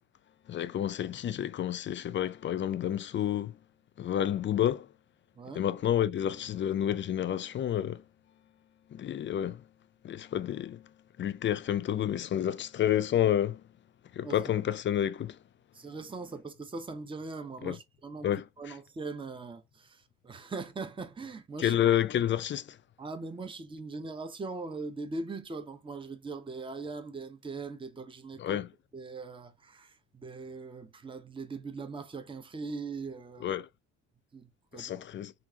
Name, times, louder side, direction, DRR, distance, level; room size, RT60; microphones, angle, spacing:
voice 1, 0.5-3.6 4.0-4.9 5.5-8.0 8.9-9.6 10.0-10.9 11.2-13.6 14.1-15.4 17.6-17.8 18.2-18.7 21.6-22.8 28.4-28.7 33.4-33.7 34.7-35.3, left 10 dB, 40° left, 0.4 m, -29 dB
voice 2, 15.7-18.3 18.6-21.8 23.0-28.6 28.9-33.6 34.3-34.9, right 3 dB, 15° right, 0.6 m, -40 dB
3.6 x 2.4 x 2.8 m
cardioid pair, 90°, 30 cm